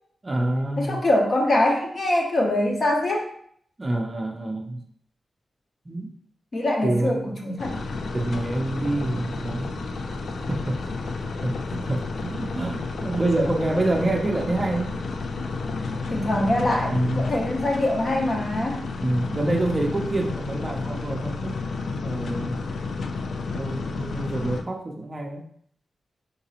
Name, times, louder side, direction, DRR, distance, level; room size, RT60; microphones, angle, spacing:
voice 1, 0.2-1.0 3.8-4.8 5.9-6.1 6.8-7.5 8.1-9.7 10.5-10.8 11.4-14.9 16.9-17.4 19.0-21.6 21.9-22.6 23.5-25.4, right 1 dB, 20° right, 1 dB, 0.5 m, -27 dB
voice 2, 0.8-3.3 6.5-7.7 16.1-18.8, left 1 dB, 40° left, 1 dB, 0.8 m, -23 dB
sound 1, 7.6-24.6, left 3 dB, 75° left, 0.4 m, -31 dB
4.0 x 3.8 x 2.9 m, 0.63 s
wide cardioid pair, 155°, 0 cm